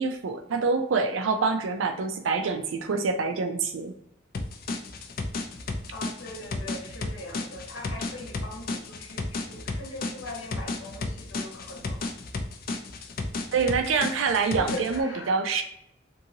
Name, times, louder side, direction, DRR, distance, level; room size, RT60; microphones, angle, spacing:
voice 1, 0.0-3.9 13.5-15.6, right 4 dB, 85° right, 6 dB, 0.4 m, -26 dB
sound 1, 4.3-15.0, left 3 dB, 50° left, 0.3 m, -33 dB
voice 2, 5.9-12.1 14.5-15.3, left 1 dB, 90° left, -1 dB, 1.0 m, -40 dB
2.7 x 2.6 x 2.7 m, 0.76 s
head